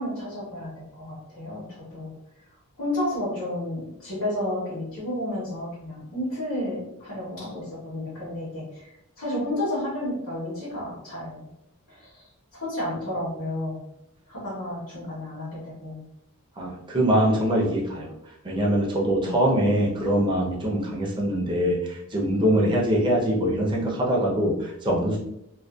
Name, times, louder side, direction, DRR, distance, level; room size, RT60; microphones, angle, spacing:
voice 1, 0.0-2.1 2.8-11.5 11.9-13.8 14.3-16.0 19.0-19.3 22.5-22.7, left 1 dB, 60° left, -10 dB, 1.0 m, -32 dB
voice 2, 16.6-18.1 18.4-25.2, equal, 20° right, -2 dB, 0.5 m, -23 dB
2.5 x 2.2 x 2.2 m, 0.83 s
head